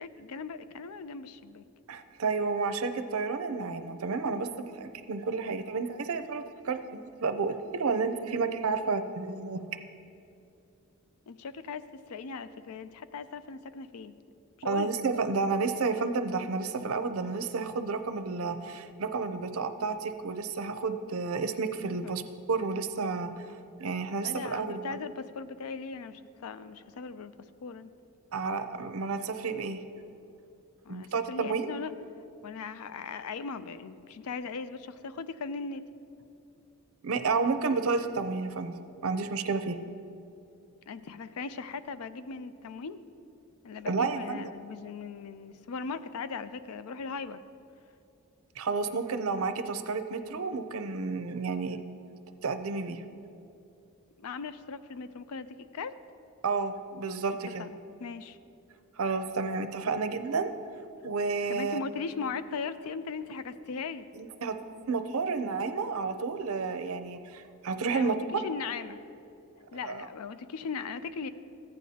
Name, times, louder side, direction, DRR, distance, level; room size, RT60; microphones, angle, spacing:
voice 1, 0.0-1.6 11.3-14.1 14.6-14.9 22.0-22.1 24.2-27.3 27.6-27.9 30.8-31.9 32.4-35.8 40.9-43.0 43.6-47.4 54.2-56.0 57.6-57.7 58.0-58.4 61.5-64.1 67.9-69.0 69.7-71.3, left 5 dB, 80° left, 13 dB, 0.4 m, -38 dB
voice 2, 1.9-9.6 14.6-22.2 22.5-23.3 23.8-25.0 28.3-29.8 30.9-31.7 37.0-38.7 39.0-39.8 43.9-44.5 48.6-51.8 52.4-53.0 56.4-57.7 59.0-60.5 61.0-61.8 64.2-64.6 64.9-68.4 69.8-70.1, right 4 dB, 70° right, 9 dB, 0.5 m, -31 dB
14.5 x 9.2 x 2.8 m, 2.6 s
head